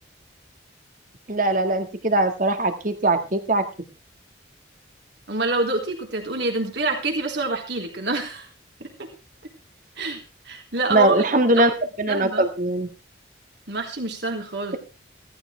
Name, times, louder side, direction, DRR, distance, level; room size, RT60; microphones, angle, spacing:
voice 1, 1.3-3.6 10.9-12.9, right 2 dB, 45° right, 8 dB, 1.8 m, -21 dB
voice 2, 5.3-8.5 8.8-9.1 10.0-11.1 11.4-11.5 12.1-12.4 13.7-14.8, right 3 dB, 65° right, 2 dB, 4.1 m, -27 dB
16.0 x 14.5 x 3.4 m, 0.31 s
head